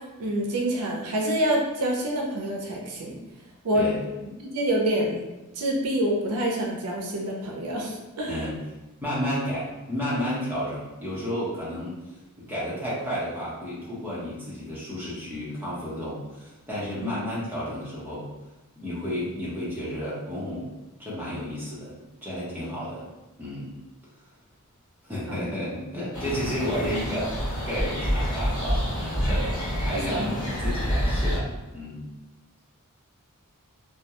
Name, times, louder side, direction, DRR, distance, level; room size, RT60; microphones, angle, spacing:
voice 1, 0.2-3.2 3.6-3.9 4.4-5.2 5.6-8.4 17.0-17.1 25.3-25.4 30.1-30.4, right 1 dB, 90° right, -1 dB, 0.5 m, -27 dB
voice 2, 9.0-12.0 12.4-18.3 18.8-20.7 21.0-21.9 22.2-23.0 23.4-23.7 25.0-32.0, equal, 10° right, -8 dB, 0.8 m, -32 dB
sound 1, 26.1-31.4, equal, 15° left, 1.3 m, -27 dB
2.3 x 2.1 x 2.9 m, 1.1 s
head